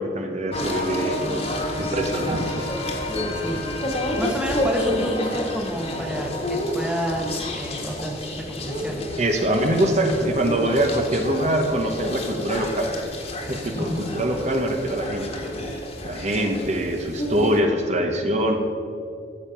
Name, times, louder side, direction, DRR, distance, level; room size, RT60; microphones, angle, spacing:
voice 1, 0.0-1.3 1.8-2.5 9.2-12.9 13.5-15.3 16.0-18.6, right 1 dB, 40° right, 3 dB, 1.0 m, -23 dB
sound 1, 0.5-17.6, left 1 dB, 35° left, 1.7 m, -29 dB
voice 2, 1.2-2.0 2.4-2.7 3.3-3.7 4.2-9.1 13.7-14.1, equal, 5° right, 1 dB, 1.2 m, -30 dB
14.0 x 7.2 x 5.9 m, 2.5 s
head